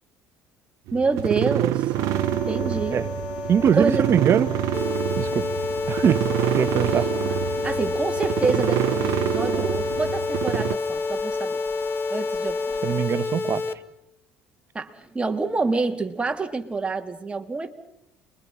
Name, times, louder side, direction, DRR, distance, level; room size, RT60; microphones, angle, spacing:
voice 1, 0.9-1.9 2.3-3.0 3.8-4.1 7.2-7.4 7.6-11.6 12.1-12.6 12.9-13.0 14.7-17.7, right 3 dB, 20° right, 5 dB, 2.8 m, -27 dB
sound 1, 0.9-10.7, right 16 dB, 70° right, 0.8 m, -27 dB
sound 2, 1.9-13.1, left 3 dB, 80° left, 3.2 m, -34 dB
voice 2, 3.5-4.5 5.2-5.4 5.9-6.2 6.5-7.1 12.8-13.6, right 8 dB, 50° right, 13 dB, 1.3 m, -21 dB
sound 3, 4.7-13.7, left 4 dB, 40° left, 1.7 m, -29 dB
29.5 x 23.0 x 5.7 m, 0.84 s
hypercardioid pair, 70°, 6 cm